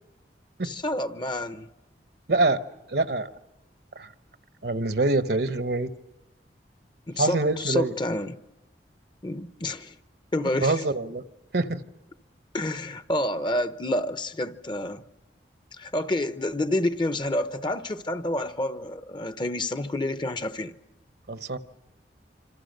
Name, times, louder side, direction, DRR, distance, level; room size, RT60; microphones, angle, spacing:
voice 1, 0.6-1.7 7.1-8.4 9.2-9.9 10.3-10.8 12.5-15.0 15.8-20.7, left 1 dB, 25° left, 0.8 m, -29 dB
voice 2, 2.3-2.6 2.9-3.3 4.0-4.1 4.6-5.9 7.2-7.9 10.6-11.2 11.5-11.8 21.3-21.6, right 2 dB, 65° right, 1.1 m, -25 dB
27.0 x 26.5 x 6.7 m
head